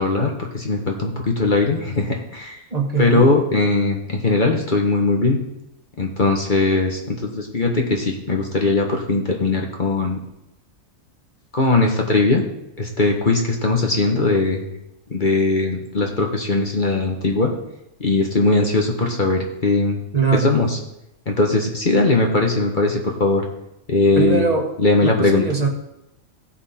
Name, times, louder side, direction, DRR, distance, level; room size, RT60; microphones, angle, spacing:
voice 1, 0.0-2.6 3.0-5.4 6.0-10.2 11.5-12.4 12.8-14.7 15.1-17.5 18.0-20.0 20.3-20.8 21.3-23.4 23.9-24.4 24.8-25.4, left 3 dB, 40° left, 1 dB, 1.3 m, -19 dB
voice 2, 2.7-3.3 20.1-20.6 24.2-24.7 25.0-25.7, right 5 dB, 30° right, 1 dB, 1.5 m, -21 dB
17.0 x 5.9 x 4.3 m, 0.86 s
omnidirectional pair, 1.4 m